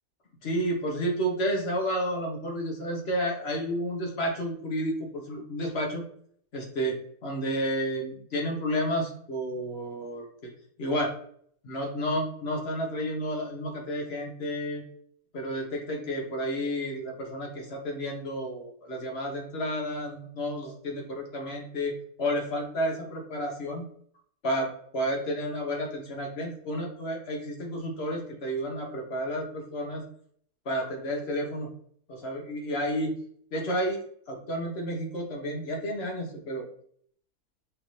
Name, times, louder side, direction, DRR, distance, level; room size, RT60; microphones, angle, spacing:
voice 1, 0.4-6.0 6.5-7.0 7.2-10.3 10.8-11.1 11.6-14.8 15.3-21.9 22.2-23.8 24.4-30.0 30.6-31.7 32.1-33.1 33.5-34.0 34.3-36.7, equal, 50° left, 1 dB, 1.2 m, -31 dB
6.3 x 2.7 x 3.1 m, 0.62 s
omnidirectional pair, 1.5 m